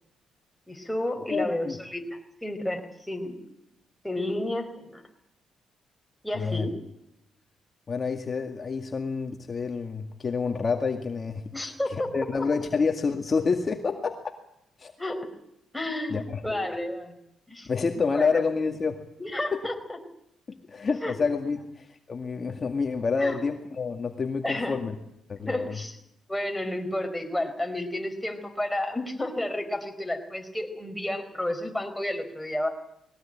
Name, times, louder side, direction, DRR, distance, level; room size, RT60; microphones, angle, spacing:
voice 1, 0.7-3.3 4.0-5.0 6.2-6.8 11.5-12.2 15.0-15.3 15.7-17.2 17.5-17.7 18.1-18.4 19.2-20.0 21.0-21.1 23.2-23.4 24.4-24.8 25.5-26.0 26.3-32.7, left 1 dB, 5° left, 4 dB, 4.6 m, -31 dB
voice 2, 1.3-1.8 6.4-6.7 7.9-14.3 14.8-14.9 16.1-16.4 17.7-19.0 19.5-19.6 20.5-24.9 25.3-25.8, left 4 dB, 35° left, 4 dB, 2.1 m, -28 dB
21.0 x 17.5 x 8.9 m, 0.80 s
cardioid pair, 90°, 0 cm